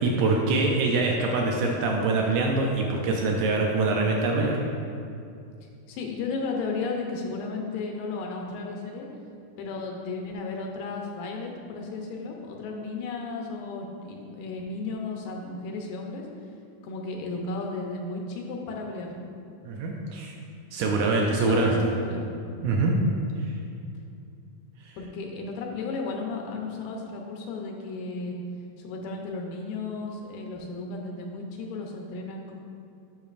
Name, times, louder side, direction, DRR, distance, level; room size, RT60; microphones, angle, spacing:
voice 1, 0.0-4.6 19.6-20.3 20.7-21.7 22.6-22.9, right 3 dB, 85° right, 0 dB, 1.6 m, -24 dB
voice 2, 5.9-9.1 9.6-16.2 16.8-19.2 21.1-22.3 23.1-23.5 25.0-28.4 28.8-32.5, left 3 dB, 85° left, 1 dB, 2.5 m, -34 dB
10.0 x 6.1 x 2.5 m, 2.5 s
omnidirectional pair, 3.9 m